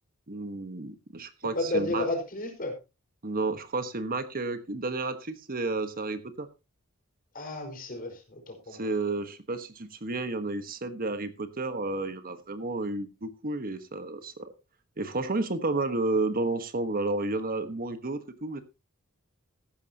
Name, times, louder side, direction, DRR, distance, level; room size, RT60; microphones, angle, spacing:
voice 1, 0.3-2.0 3.2-6.5 8.7-14.5 15.0-18.6, right 2 dB, 45° right, 10 dB, 1.3 m, -31 dB
voice 2, 1.5-2.7 7.3-9.2, left 2 dB, 45° left, 3 dB, 4.9 m, -32 dB
15.0 x 12.0 x 2.9 m, 0.27 s
head